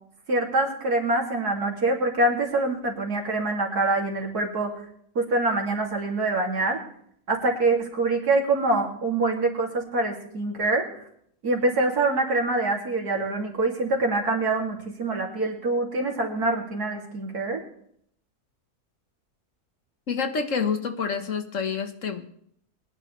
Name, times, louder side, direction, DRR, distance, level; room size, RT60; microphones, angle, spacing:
voice 1, 0.3-4.7 5.2-6.8 7.3-10.8 11.4-17.6, right 2 dB, 80° right, 0 dB, 3.5 m, -25 dB
voice 2, 20.1-22.3, left 5 dB, 55° left, 7 dB, 1.8 m, -28 dB
23.0 x 10.5 x 3.4 m, 0.67 s
omnidirectional pair, 1.6 m